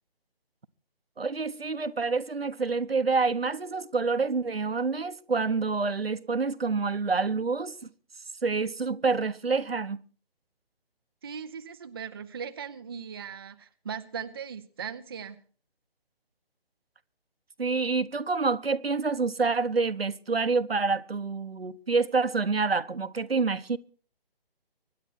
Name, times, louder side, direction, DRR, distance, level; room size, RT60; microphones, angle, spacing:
voice 1, 1.2-7.8 8.4-10.0 17.6-23.8, right 4 dB, 75° right, 1.0 m, -27 dB
voice 2, 11.2-15.4, right 7 dB, 25° right, 0.6 m, -39 dB
24.5 x 10.5 x 4.5 m
figure-of-eight pair, 145°, 30 cm